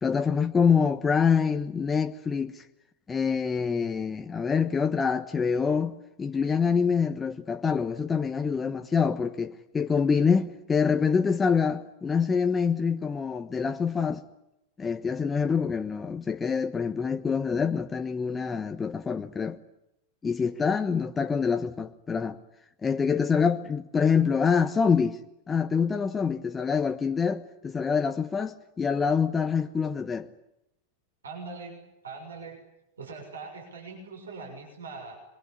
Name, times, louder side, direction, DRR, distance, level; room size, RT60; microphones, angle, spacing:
voice 1, 0.0-2.6 3.1-14.2 14.8-19.6 20.2-22.4 22.8-25.2 25.5-30.3, left 6 dB, 15° left, 1.2 m, -26 dB
voice 2, 31.2-32.6 33.0-35.2, right 4 dB, 70° right, 6.7 m, -41 dB
27.0 x 23.0 x 8.5 m
figure-of-eight pair, 90°, 0 cm